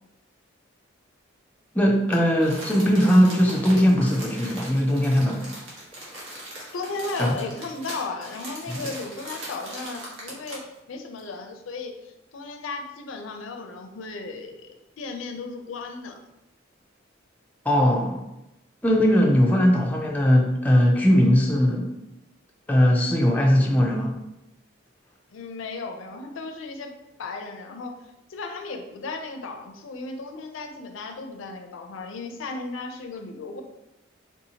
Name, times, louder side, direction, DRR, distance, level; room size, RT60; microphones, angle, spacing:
voice 1, 1.7-5.5 7.2-7.3 8.7-8.9 17.7-18.2 18.8-21.9 22.7-24.1, equal, 10° left, -1 dB, 0.3 m, -19 dB
Crumpling crinkling, 2.1-10.7 11.2-11.3, right 1 dB, 80° right, 1.2 m, -39 dB
voice 2, 6.7-16.2 25.3-26.9 27.2-28.0 28.3-33.6, left 3 dB, 80° left, 5 dB, 0.4 m, -35 dB
3.6 x 2.7 x 2.8 m, 0.91 s
head